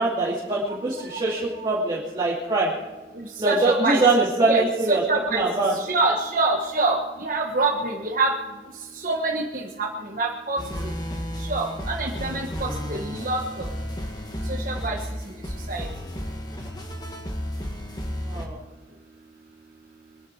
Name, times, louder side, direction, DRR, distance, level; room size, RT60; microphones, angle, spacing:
voice 1, 0.0-2.7 3.4-5.0 5.3-5.7 18.3-18.5, right 2 dB, 25° right, -5 dB, 2.6 m, -23 dB
voice 2, 0.9-1.7 3.1-4.0 4.4-8.3 8.9-10.9 11.4-13.7 14.5-15.0 15.7-15.9, right 2 dB, 50° right, 1 dB, 1.4 m, -26 dB
sound 1, 10.6-18.5, equal, 25° left, 2.0 m, -32 dB
24.0 x 10.5 x 4.8 m, 1.2 s
head